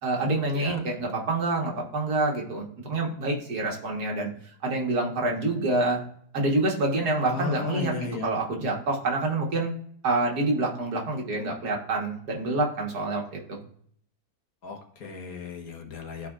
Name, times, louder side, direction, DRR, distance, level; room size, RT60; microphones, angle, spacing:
voice 1, 0.0-4.3 4.6-6.0 6.3-9.7 10.0-13.6, right 2 dB, 70° right, 0 dB, 1.9 m, -27 dB
voice 2, 7.2-8.3 14.6-16.3, left 5 dB, 65° left, 3 dB, 1.5 m, -35 dB
13.5 x 4.6 x 2.4 m, 0.63 s
omnidirectional pair, 1.7 m